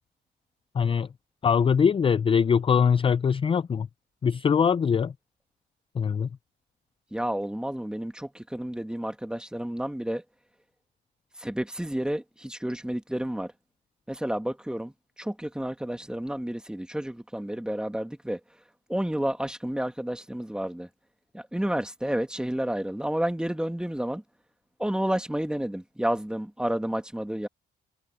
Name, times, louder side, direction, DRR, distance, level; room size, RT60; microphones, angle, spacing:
voice 1, 0.7-1.1 1.4-3.9 4.2-5.1 5.9-6.3, left 6 dB, 25° left, 0.4 m, -22 dB
voice 2, 7.1-10.2 11.4-13.5 14.1-14.9 15.2-18.4 18.9-20.9 21.3-24.2 24.8-27.5, right 1 dB, 5° right, 2.0 m, -30 dB
cardioid pair, 90°, 20 cm